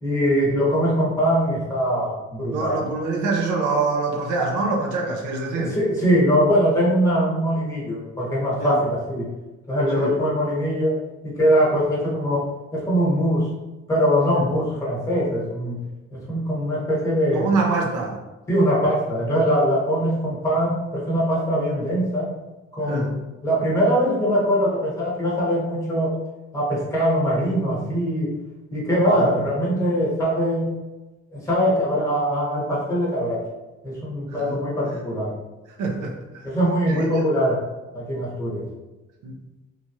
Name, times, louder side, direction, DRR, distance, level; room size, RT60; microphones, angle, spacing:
voice 1, 0.0-2.9 5.5-9.3 9.7-13.5 13.9-15.8 16.1-17.5 18.5-22.3 22.7-26.1 26.5-28.4 28.7-30.7 31.3-33.4 33.8-35.3 36.4-37.6 37.9-38.7, equal, 10° left, -7 dB, 0.9 m, -22 dB
voice 2, 2.5-5.7 8.6-8.7 10.0-10.1 14.4-14.5 17.3-18.2 22.9-23.1 29.1-29.3 34.4-34.5 35.8-36.1 36.9-37.3 39.2-39.3, right 3 dB, 90° right, 0 dB, 0.6 m, -24 dB
3.0 x 2.3 x 2.7 m, 1.1 s
cardioid pair, 150°, 30 cm